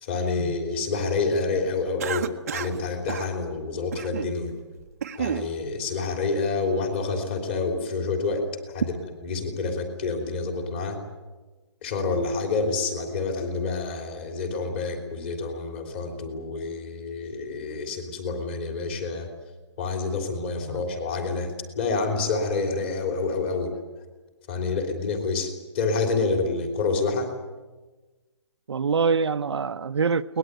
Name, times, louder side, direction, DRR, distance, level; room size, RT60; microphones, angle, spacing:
voice 1, 0.0-4.5 5.2-8.4 8.7-9.0 9.2-11.0 11.8-19.3 19.8-23.7 24.5-27.3, left 4 dB, 25° left, 4 dB, 3.2 m, -28 dB
Cough, 2.0-2.8 3.1-3.3 3.9-4.3 4.8-5.5, right 8 dB, 30° right, 0.9 m, -31 dB
voice 2, 28.7-30.4, right 5 dB, 70° right, 9 dB, 0.9 m, -25 dB
23.0 x 20.0 x 9.1 m, 1.2 s
hypercardioid pair, 175°, 15 cm